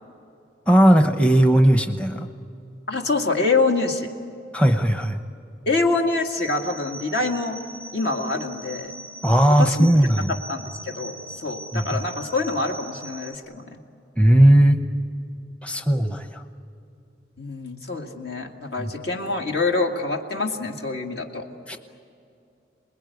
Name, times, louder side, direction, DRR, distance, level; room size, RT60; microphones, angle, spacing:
voice 1, 0.7-2.3 4.5-5.2 9.2-10.3 11.7-12.0 14.2-14.8 15.6-16.4 18.8-18.9 21.7-21.8, right 1 dB, 5° left, 6 dB, 0.9 m, -17 dB
voice 2, 2.9-4.1 5.7-7.6 7.9-8.9 9.6-13.8 17.4-21.5, left 3 dB, 60° left, 2 dB, 2.1 m, -26 dB
sound 1, 6.2-13.4, right 1 dB, 85° left, 3.3 m, -40 dB
28.5 x 21.0 x 9.4 m, 2.7 s
head